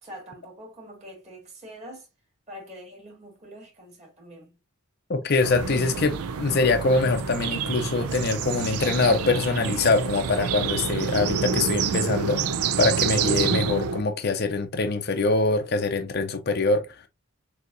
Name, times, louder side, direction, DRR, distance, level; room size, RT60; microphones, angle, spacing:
voice 1, 0.0-2.1 2.5-4.6, equal, 30° right, 2.2 m, -44 dB
voice 2, 5.1-12.5 12.8-16.9, left 3 dB, 45° left, 0.5 m, -24 dB
sound 1, 5.4-14.0, right 6 dB, 85° right, 0.5 m, -27 dB
6.4 x 2.8 x 2.5 m
head